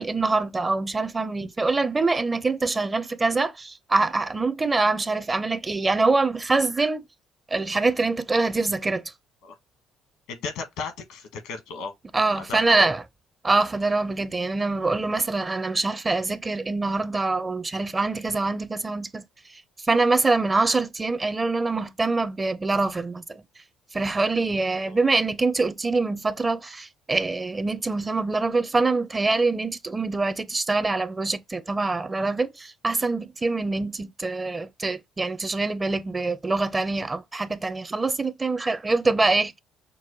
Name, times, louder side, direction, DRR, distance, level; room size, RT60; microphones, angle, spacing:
voice 1, 0.0-7.0 7.5-9.1 12.1-13.0 13.4-19.2 19.8-23.4 23.9-39.6, right 3 dB, 25° right, 0.5 m, -24 dB
voice 2, 10.3-11.9 12.3-12.9 24.8-25.0, left 4 dB, 90° left, 1.4 m, -34 dB
5.9 x 2.1 x 3.0 m
cardioid pair, 90°, 0 cm